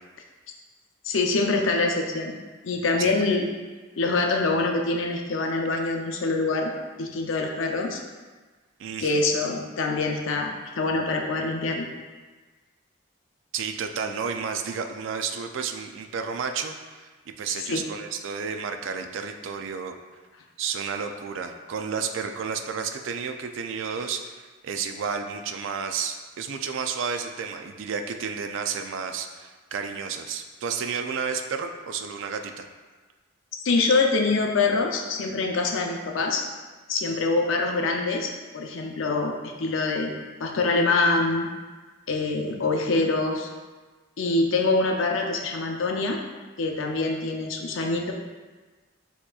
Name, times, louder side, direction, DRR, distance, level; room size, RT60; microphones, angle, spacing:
voice 1, 1.0-2.4 2.6-3.5 4.0-6.7 7.0-8.0 9.0-11.9 17.6-17.8 33.6-36.4 36.9-39.3 39.6-40.1 40.4-41.5 42.1-43.5 44.2-46.2 46.6-48.1, left 3 dB, 70° left, 2 dB, 0.5 m, -25 dB
voice 2, 8.8-9.3 13.5-17.1 17.4-19.9 20.6-32.7, right 6 dB, 65° right, 6 dB, 0.4 m, -31 dB
6.6 x 2.9 x 2.3 m, 1.3 s
head